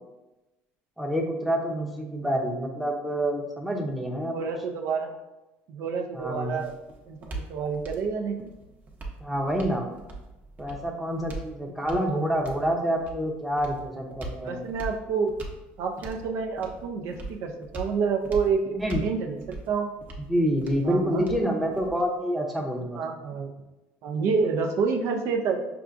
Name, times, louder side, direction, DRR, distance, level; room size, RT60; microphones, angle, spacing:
voice 1, 1.0-4.5 6.1-6.6 9.2-9.9 10.6-14.7 18.7-19.1 20.3-23.0, equal, ahead, -1 dB, 0.7 m, -27 dB
voice 2, 1.7-2.2 4.3-5.1 5.7-6.7 7.1-8.5 14.4-15.3 15.8-19.4 19.7-19.9 20.8-21.3 23.0-23.5 24.0-25.7, right 5 dB, 65° right, 4 dB, 0.5 m, -28 dB
sound 1, 6.1-22.2, right 2 dB, 30° right, 0.8 m, -41 dB
5.6 x 2.4 x 2.5 m, 1.0 s
supercardioid pair, 105°, 5 cm